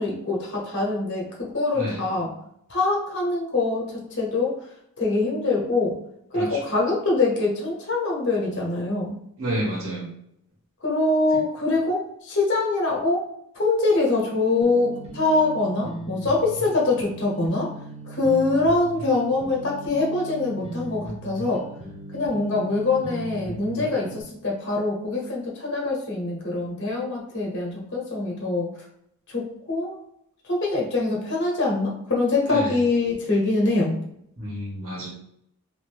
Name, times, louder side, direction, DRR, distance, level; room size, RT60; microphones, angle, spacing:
voice 1, 0.0-2.3 2.7-4.6 5.0-6.0 6.3-9.1 10.8-13.3 13.5-17.7 18.0-21.7 22.1-28.7 29.3-30.0 30.4-34.0, left 3 dB, 55° left, -2 dB, 0.9 m, -24 dB
voice 2, 1.7-2.0 6.3-6.6 9.4-10.0 32.5-32.7 34.4-35.1, right 1 dB, 70° right, -6 dB, 1.3 m, -29 dB
sound 1, 14.6-24.2, right 1 dB, 25° right, 0.8 m, -38 dB
2.7 x 2.6 x 3.3 m, 0.73 s
head